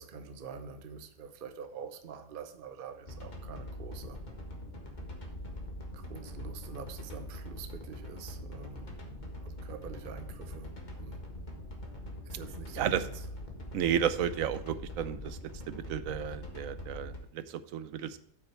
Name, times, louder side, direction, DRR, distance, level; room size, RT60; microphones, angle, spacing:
voice 1, 0.0-4.2 5.9-10.7 11.0-11.2 12.2-13.1, right 6 dB, 45° right, 8 dB, 0.8 m, -46 dB
sound 1, 3.1-17.2, left 1 dB, 30° left, 1.6 m, -43 dB
voice 2, 12.7-13.1 13.7-15.4 15.7-18.2, right 9 dB, 65° right, 13 dB, 1.0 m, -32 dB
8.4 x 6.0 x 4.5 m, 0.70 s
omnidirectional pair, 1.7 m